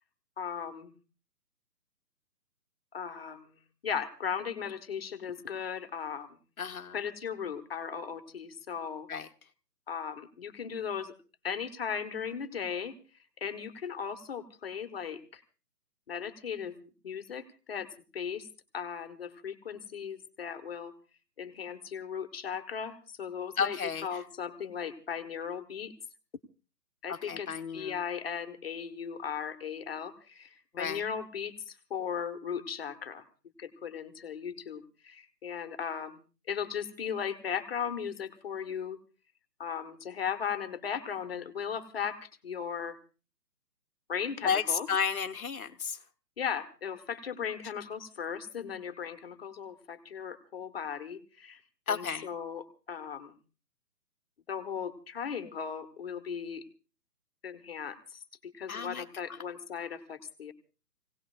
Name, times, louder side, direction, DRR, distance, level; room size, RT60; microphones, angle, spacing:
voice 1, 0.4-1.0 2.9-3.6 3.8-6.4 6.9-9.1 9.9-11.1 11.4-12.9 13.4-15.4 16.1-16.7 17.0-17.9 18.1-18.5 18.7-20.9 21.4-25.9 27.0-33.2 33.6-36.2 36.5-39.0 39.6-43.0 44.1-44.9 46.4-51.6 51.9-53.4 54.5-56.6 57.4-60.5, left 7 dB, 35° left, 8 dB, 1.5 m, -37 dB
voice 2, 6.6-7.0 9.1-9.3 23.6-24.1 27.3-28.0 30.7-31.0 44.4-46.0 51.9-52.3 58.7-59.0, left 6 dB, 60° left, 8 dB, 1.2 m, -32 dB
27.5 x 18.0 x 2.5 m, 0.34 s
figure-of-eight pair, 140°, 48 cm